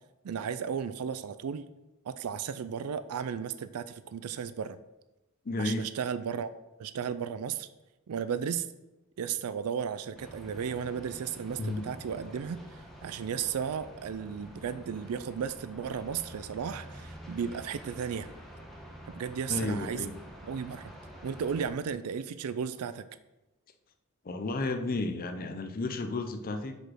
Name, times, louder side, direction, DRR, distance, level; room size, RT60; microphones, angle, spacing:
voice 1, 0.2-1.7 2.0-4.8 5.6-6.5 6.8-7.7 8.1-8.7 9.2-12.6 13.0-18.3 19.1-20.0 20.5-20.9 21.2-23.0, right 7 dB, 80° right, 14 dB, 0.4 m, -34 dB
voice 2, 5.4-5.9 11.6-11.8 19.5-20.1 24.2-26.8, left 2 dB, 40° left, 6 dB, 0.6 m, -32 dB
sound 1, 10.1-21.7, equal, ahead, 1.1 m, -48 dB
6.2 x 5.1 x 6.2 m, 1.0 s
head